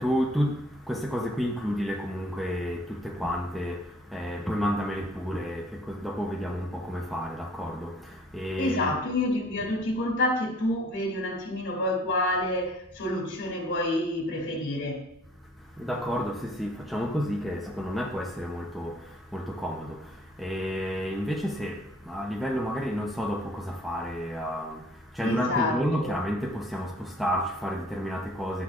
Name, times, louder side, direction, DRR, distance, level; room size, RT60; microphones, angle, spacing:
voice 1, 0.0-9.0 15.4-28.6, equal, ahead, 0.7 m, -31 dB
voice 2, 8.6-15.0 25.2-26.1, left 1 dB, 55° left, 2.7 m, -28 dB
11.5 x 9.7 x 2.5 m
head